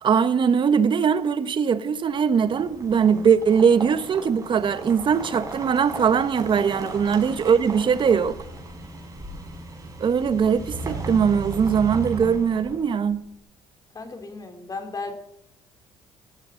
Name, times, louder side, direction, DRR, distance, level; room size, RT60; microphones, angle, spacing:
voice 1, 0.0-8.3 10.0-13.2, right 6 dB, 45° right, 1.3 m, -21 dB
sound 1, 2.3-13.1, right 3 dB, 30° right, 6.0 m, -36 dB
voice 2, 13.9-15.1, left 3 dB, 30° left, 3.4 m, -35 dB
16.5 x 16.5 x 4.0 m
supercardioid pair, 85°, 12 cm